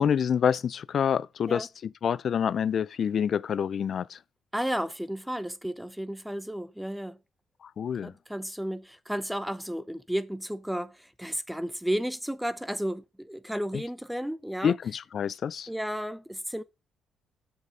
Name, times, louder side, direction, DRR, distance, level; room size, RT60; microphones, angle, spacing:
voice 1, 0.0-4.2 7.6-8.1 13.7-13.8 14.6-15.7, left 8 dB, 55° left, 0.3 m, -27 dB
voice 2, 4.5-7.2 8.0-14.7 15.7-16.6, equal, 5° right, 0.7 m, -33 dB
7.2 x 6.5 x 3.7 m
cardioid pair, 90°, 0 cm